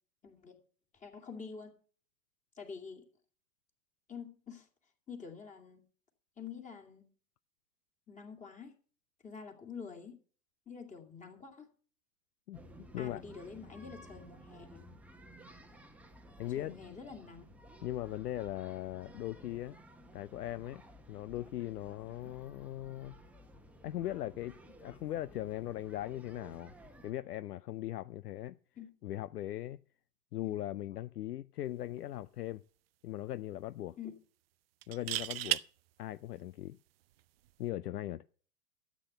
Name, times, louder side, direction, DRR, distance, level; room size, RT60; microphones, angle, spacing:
voice 1, 0.2-0.6 0.9-1.7 2.5-3.1 4.1-4.7 5.1-5.8 6.4-7.1 8.1-8.7 9.2-10.2 10.7-11.7 13.0-14.8 16.6-17.5 28.8-28.9 30.4-30.5 34.0-34.1, left 6 dB, 15° left, 2.3 m, -47 dB
sound 1, 12.5-27.1, equal, 5° right, 1.0 m, -55 dB
voice 2, 16.4-17.0 17.8-19.8 20.1-20.8 21.1-23.2 23.8-26.7 27.0-28.6 29.0-29.8 30.3-32.6 33.0-34.0 34.9-35.6 36.0-36.8 37.6-38.2, left 13 dB, 70° left, 0.6 m, -39 dB
sound 2, 32.0-32.2 32.5-32.6 34.8-35.6 37.5-37.7, right 15 dB, 40° right, 0.5 m, -34 dB
13.0 x 8.3 x 6.6 m
figure-of-eight pair, 110°, 49 cm